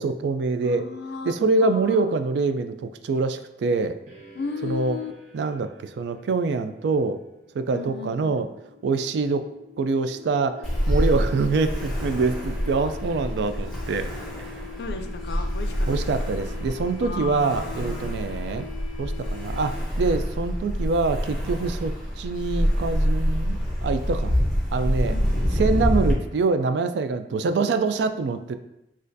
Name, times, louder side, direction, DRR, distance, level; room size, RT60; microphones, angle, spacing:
voice 1, 0.0-0.9 1.2-4.0 4.6-5.0 5.3-7.2 7.5-8.5 8.8-9.5 9.8-14.1 14.4-14.6 15.9-18.7 19.0-24.3 24.7-25.2 25.5-28.6, right 4 dB, 75° right, 9 dB, 0.3 m, -25 dB
voice 2, 0.6-1.3 1.6-2.1 4.3-5.1 7.7-8.5 14.8-16.0 17.0-18.1 25.1-25.6, left 5 dB, 70° left, 6 dB, 0.4 m, -35 dB
sound 1, 4.1-20.0, left 6 dB, 45° right, 0.8 m, -44 dB
Ocean, 10.6-26.1, equal, 5° left, 0.9 m, -27 dB
6.3 x 2.4 x 2.6 m, 0.88 s
head